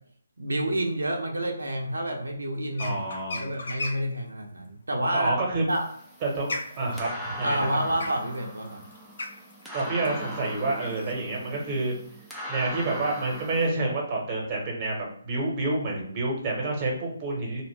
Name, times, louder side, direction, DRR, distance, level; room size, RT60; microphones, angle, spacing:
voice 1, 0.4-3.0 3.4-5.3 5.7-5.9 7.4-8.8, right 1 dB, 90° right, 1 dB, 0.6 m, -29 dB
sound 1, 2.7-4.2 5.5-11.1, left 2 dB, 65° left, 0.6 m, -37 dB
voice 2, 2.8-3.5 5.1-5.6 6.2-7.8 9.7-11.9 12.5-17.6, right 2 dB, 25° right, -1 dB, 0.9 m, -28 dB
sound 2, 5.7-13.7, equal, 5° right, 0.5 m, -40 dB
2.5 x 2.1 x 3.1 m, 0.62 s
figure-of-eight pair, 150°, 0 cm